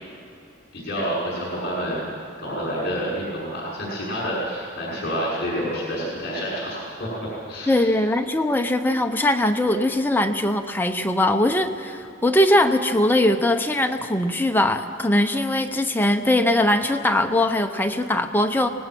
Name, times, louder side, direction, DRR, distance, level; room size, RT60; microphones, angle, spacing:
voice 1, 0.7-2.1 2.4-7.9, equal, 50° left, -6 dB, 5.9 m, -28 dB
voice 2, 7.7-18.7, left 1 dB, 10° left, 5 dB, 0.7 m, -21 dB
25.5 x 19.0 x 6.1 m, 2.7 s
head